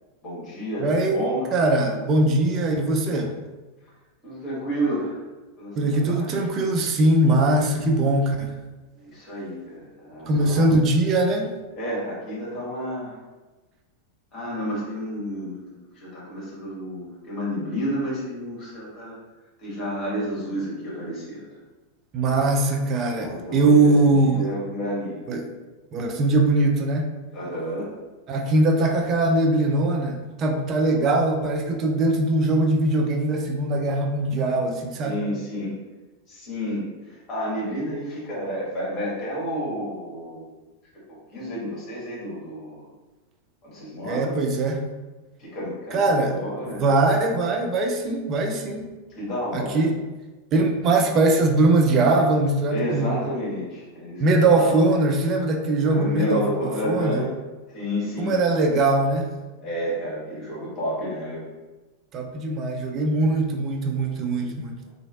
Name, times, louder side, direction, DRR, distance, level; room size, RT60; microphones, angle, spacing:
voice 1, 0.2-1.5 4.2-5.2 5.6-6.4 8.9-10.7 11.8-13.2 14.3-19.2 19.6-21.6 23.1-25.3 27.3-27.9 35.0-35.8 36.3-40.5 41.1-42.9 43.6-44.4 45.4-46.8 49.1-49.8 52.7-54.9 55.8-57.3 57.7-58.4 59.6-61.4, equal, 30° left, -7 dB, 1.5 m, -31 dB
voice 2, 0.8-1.2 1.5-3.3 5.8-8.5 10.3-11.5 22.1-24.5 25.3-25.5 25.9-27.1 28.3-35.2 44.0-44.8 45.9-46.4 46.6-48.9 49.5-50.0 50.5-53.2 54.2-57.2 58.2-59.3 62.1-64.7, right 2 dB, 30° right, 3 dB, 0.4 m, -21 dB
3.0 x 2.5 x 2.4 m, 1.2 s
figure-of-eight pair, 90°, 0 cm